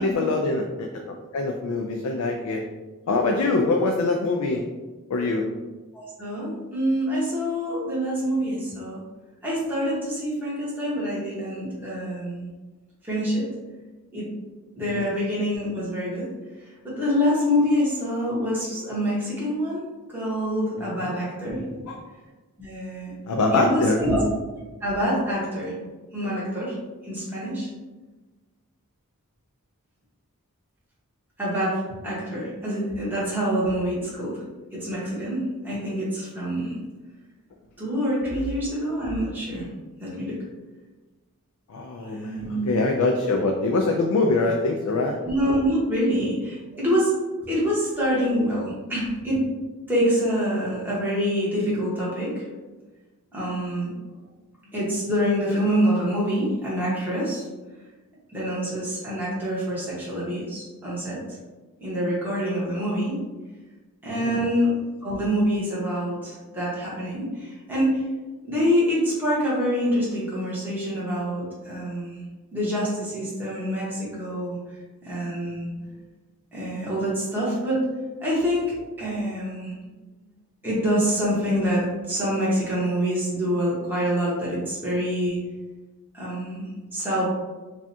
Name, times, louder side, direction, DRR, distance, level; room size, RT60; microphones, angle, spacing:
voice 1, 0.0-2.6 3.1-4.6 5.1-5.5 14.9-15.1 20.8-21.1 21.9-22.0 23.3-24.0 41.7-45.2 64.1-64.5, left 3 dB, 90° left, 2 dB, 0.4 m, -24 dB
voice 2, 5.9-9.0 9.4-12.5 13.0-13.5 14.1-14.3 14.8-16.3 16.6-21.8 22.6-23.1 23.5-24.2 24.8-25.7 26.1-26.8 27.0-27.7 31.4-34.4 34.7-36.8 37.8-39.7 40.0-40.3 42.1-42.7 45.2-49.5 49.9-52.4 53.3-53.9 54.7-57.4 58.3-61.2 61.8-63.2 64.0-64.7 65.0-68.0 68.4-72.2 72.5-74.6 75.0-75.8 76.5-77.9 78.2-79.9 80.6-85.4 86.1-87.3, equal, 10° right, -8 dB, 1.2 m, -26 dB
4.8 x 2.3 x 2.7 m, 1.2 s
head